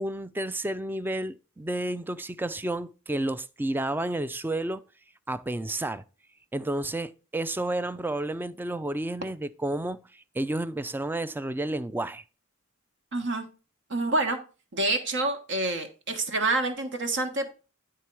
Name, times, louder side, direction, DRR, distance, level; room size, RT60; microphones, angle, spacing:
voice 1, 0.0-4.8 5.3-6.0 6.5-12.2, right 1 dB, 10° right, 0.3 m, -31 dB
voice 2, 13.1-13.5 13.9-14.4 14.7-17.5, right 2 dB, 60° right, 1.2 m, -27 dB
9.8 x 3.7 x 4.5 m
head